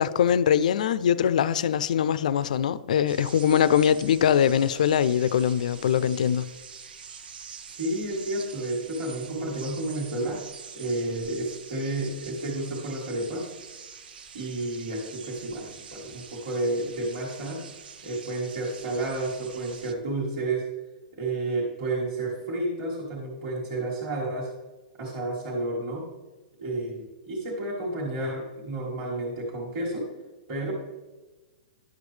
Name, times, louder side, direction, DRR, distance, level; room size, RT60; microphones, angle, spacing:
voice 1, 0.0-6.5, left 9 dB, 50° left, 0.3 m, -22 dB
sound 1, 3.1-19.9, right 6 dB, 85° right, 0.8 m, -45 dB
voice 2, 7.7-10.4 10.7-13.5 14.3-17.7 18.0-20.7 21.1-24.5 25.0-26.1 26.6-30.1 30.5-30.7, right 2 dB, 20° right, 1.4 m, -31 dB
10.5 x 7.0 x 3.2 m
hypercardioid pair, 180°, 5 cm